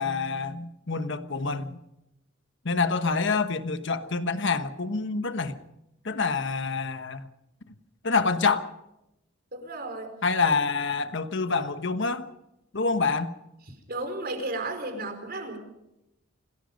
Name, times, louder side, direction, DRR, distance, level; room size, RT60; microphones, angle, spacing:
voice 1, 0.0-1.8 2.6-5.5 6.0-7.3 8.0-8.7 10.2-12.3 12.7-13.3, left 4 dB, 60° left, 9 dB, 1.3 m, -27 dB
voice 2, 9.5-10.1 13.9-15.6, right 2 dB, 50° right, 6 dB, 4.6 m, -33 dB
27.5 x 18.5 x 5.3 m, 0.89 s
head